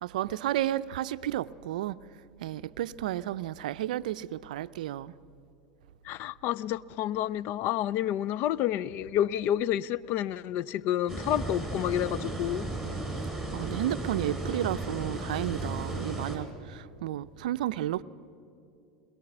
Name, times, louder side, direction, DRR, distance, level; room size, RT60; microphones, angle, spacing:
voice 1, 0.0-2.0 2.4-5.1 13.5-18.0, right 13 dB, 75° right, 0.5 m, -32 dB
voice 2, 6.0-12.7, left 12 dB, 50° left, 0.5 m, -29 dB
sound 1, 11.1-16.4, right 2 dB, 5° left, 4.7 m, -35 dB
21.5 x 21.5 x 6.1 m
hypercardioid pair, 90°, 4 cm